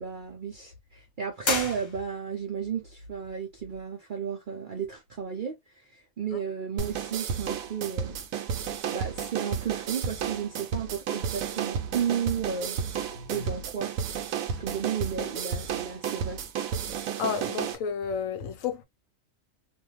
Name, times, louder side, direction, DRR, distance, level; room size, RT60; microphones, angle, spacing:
voice 1, 0.0-8.2 8.9-12.8 13.3-13.9 14.5-16.7, right 7 dB, 60° right, 0.5 m, -33 dB
sound 1, 1.4-2.5, left 2 dB, 35° left, 1.1 m, -31 dB
sound 2, 6.8-17.8, right 7 dB, 80° right, 1.0 m, -32 dB
voice 2, 17.2-18.8, left 7 dB, 75° left, 1.0 m, -31 dB
2.6 x 2.2 x 3.0 m
omnidirectional pair, 1.4 m